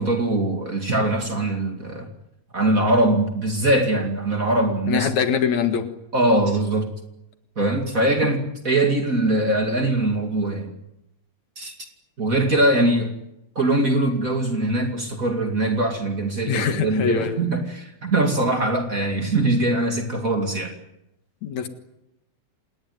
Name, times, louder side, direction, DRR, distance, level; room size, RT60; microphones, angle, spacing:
voice 1, 0.0-2.1 2.5-5.1 6.1-6.9 7.6-10.7 11.6-11.7 12.2-13.1 13.6-20.7, right 2 dB, 30° right, 4 dB, 2.6 m, -22 dB
voice 2, 4.9-5.9 12.8-13.0 16.5-17.4 21.4-21.7, left 7 dB, 70° left, 8 dB, 3.0 m, -23 dB
27.5 x 20.0 x 9.5 m, 0.88 s
omnidirectional pair, 3.4 m